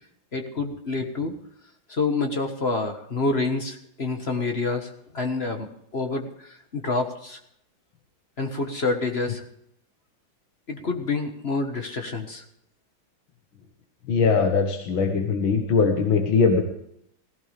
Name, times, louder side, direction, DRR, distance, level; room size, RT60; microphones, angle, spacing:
voice 1, 0.3-1.3 1.9-5.7 5.9-7.4 8.4-9.4 10.7-12.4, left 3 dB, 35° left, 4 dB, 1.5 m, -27 dB
voice 2, 14.1-16.6, left 5 dB, 75° left, 3 dB, 2.2 m, -21 dB
17.5 x 16.0 x 3.4 m, 0.73 s
omnidirectional pair, 2.2 m